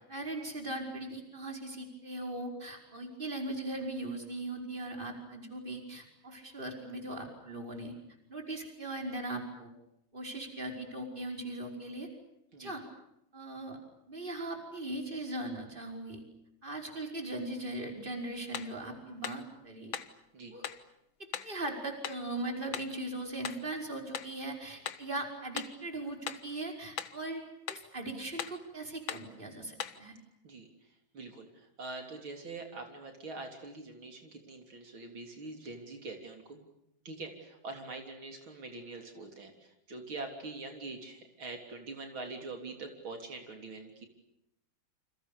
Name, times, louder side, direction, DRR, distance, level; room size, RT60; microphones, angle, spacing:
voice 1, 0.1-7.9 8.3-9.7 10.1-12.1 12.6-12.8 13.3-13.8 14.1-16.2 16.6-19.9 20.5-20.6 21.2-27.4 27.7-30.2, right 2 dB, 25° right, 3 dB, 5.4 m, -39 dB
sound 1, 18.5-18.8 19.2-19.5 19.9-20.2 20.6-20.8 21.3-21.6 22.0-22.3 22.7-23.0 23.4-23.7 24.1-24.4 24.8-25.1 25.6-25.8 26.3-26.5 27.0-27.2 27.7-27.9 28.4-28.6 29.1-29.3 29.8-30.0, left 8 dB, 80° left, 2.1 m, -39 dB
voice 2, 31.1-36.7 37.1-44.1, right 3 dB, 85° right, 4 dB, 4.3 m, -44 dB
29.5 x 27.0 x 6.9 m, 0.80 s
omnidirectional pair, 2.2 m